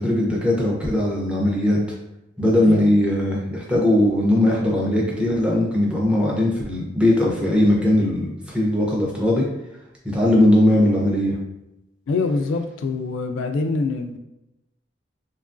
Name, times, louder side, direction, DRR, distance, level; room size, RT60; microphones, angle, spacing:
voice 1, 0.0-1.8 2.4-9.4 10.1-11.4, left 1 dB, 5° right, -4 dB, 0.5 m, -19 dB
voice 2, 12.1-14.2, left 3 dB, 90° left, 6 dB, 0.3 m, -24 dB
2.9 x 2.3 x 2.4 m, 0.89 s
head